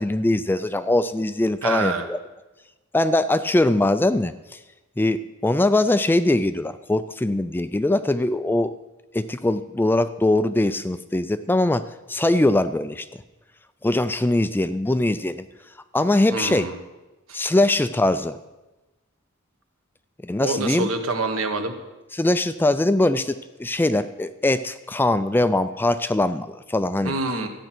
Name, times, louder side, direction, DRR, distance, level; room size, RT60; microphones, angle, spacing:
voice 1, 0.0-2.2 2.9-4.6 5.0-8.7 9.1-13.1 13.8-15.4 15.9-16.7 17.3-18.4 20.2-20.9 22.1-27.1, left 1 dB, 10° left, 12 dB, 0.3 m, -22 dB
voice 2, 1.6-2.0 16.3-16.8 20.4-21.8 27.0-27.5, right 3 dB, 70° right, 6 dB, 1.5 m, -26 dB
13.5 x 9.0 x 6.0 m, 1.1 s
head